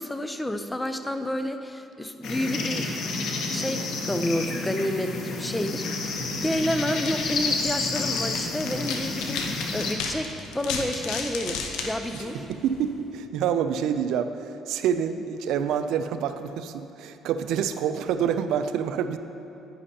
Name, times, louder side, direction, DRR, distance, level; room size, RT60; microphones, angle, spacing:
voice 1, 0.0-2.9 3.5-6.1 6.4-12.4, left 1 dB, 10° left, 7 dB, 0.5 m, -30 dB
sound 1, 2.2-9.9, left 3 dB, 65° left, 1.0 m, -30 dB
sound 2, 6.1-13.0, left 4 dB, 85° left, 0.8 m, -35 dB
voice 2, 12.1-19.2, right 8 dB, 75° right, 10 dB, 0.4 m, -27 dB
10.5 x 9.7 x 2.8 m, 2.8 s
cardioid pair, 95°, 0 cm